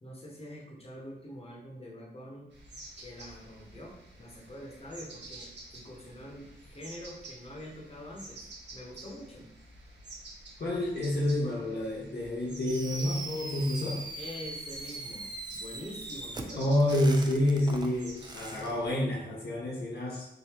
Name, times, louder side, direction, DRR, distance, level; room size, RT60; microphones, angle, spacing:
voice 1, 0.0-2.5 3.0-9.5 14.2-17.0, equal, 35° left, -2 dB, 1.1 m, -45 dB
sound 1, 2.5-18.9, right 2 dB, 70° right, 1.1 m, -50 dB
voice 2, 10.6-14.0 16.6-20.3, left 1 dB, 60° left, -5 dB, 0.8 m, -28 dB
Fireworks, 12.7-18.7, right 2 dB, 25° right, 0.4 m, -41 dB
3.8 x 2.7 x 2.9 m, 0.88 s
cardioid pair, 65°, 18 cm